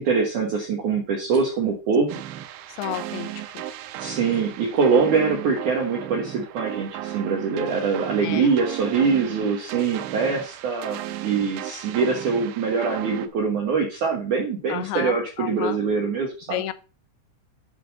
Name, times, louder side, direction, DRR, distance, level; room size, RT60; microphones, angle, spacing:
voice 1, 0.0-2.1 4.0-16.6, right 5 dB, 60° right, 2.3 m, -23 dB
sound 1, 2.1-13.3, right 12 dB, 85° right, 3.0 m, -35 dB
voice 2, 2.7-3.7 8.2-8.5 14.7-15.8 16.5-16.7, left 14 dB, 85° left, 3.0 m, -32 dB
10.5 x 4.2 x 5.4 m
omnidirectional pair, 5.2 m